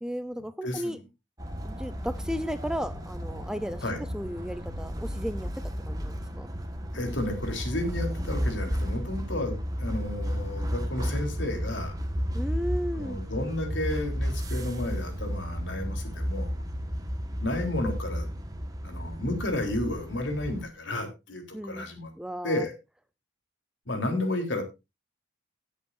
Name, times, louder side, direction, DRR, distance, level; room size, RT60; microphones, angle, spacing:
voice 1, 0.0-1.0 1.6-3.8 4.1-6.5 12.3-13.2 21.5-21.9 22.2-22.6, equal, 5° right, 12 dB, 0.6 m, -34 dB
voice 2, 0.6-1.0 3.8-4.0 6.9-12.0 12.9-16.5 17.4-18.3 18.8-22.1 22.4-22.7 23.9-24.6, left 1 dB, 80° left, 4 dB, 3.7 m, -32 dB
sound 1, 1.4-20.7, equal, 20° right, 1.5 m, -33 dB
18.5 x 8.2 x 2.6 m, 0.25 s
head